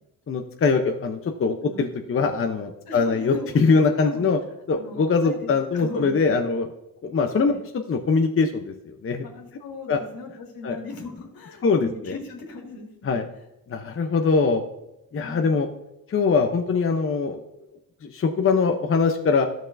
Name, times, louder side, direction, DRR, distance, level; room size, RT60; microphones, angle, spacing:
voice 1, 0.3-4.4 4.7-6.7 7.0-7.5 7.9-9.2 9.9-10.0 10.6-10.8 11.6-12.1 13.1-13.2 13.7-14.6 15.1-15.7 16.1-17.4 18.0-19.5, left 4 dB, 35° left, 4 dB, 0.7 m, -22 dB
voice 2, 2.9-4.2 4.8-5.0 5.2-6.4 7.4-7.6 9.2-13.2 15.2-15.6, left 3 dB, 75° left, 1 dB, 2.2 m, -38 dB
13.0 x 6.2 x 2.6 m, 0.90 s
cardioid pair, 90°, 36 cm